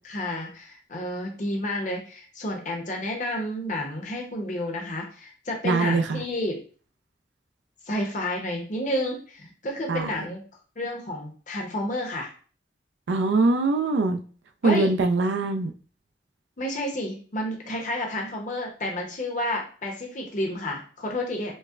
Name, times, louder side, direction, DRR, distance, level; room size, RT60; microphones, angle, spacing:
voice 1, 0.0-6.6 7.9-10.4 10.8-12.3 14.6-14.9 16.6-21.5, left 1 dB, 45° left, 1 dB, 0.7 m, -30 dB
voice 2, 5.6-6.2 9.9-10.1 13.1-14.2 14.6-15.7, right 3 dB, 85° right, 6 dB, 0.4 m, -22 dB
5.3 x 2.0 x 2.4 m, 0.40 s
head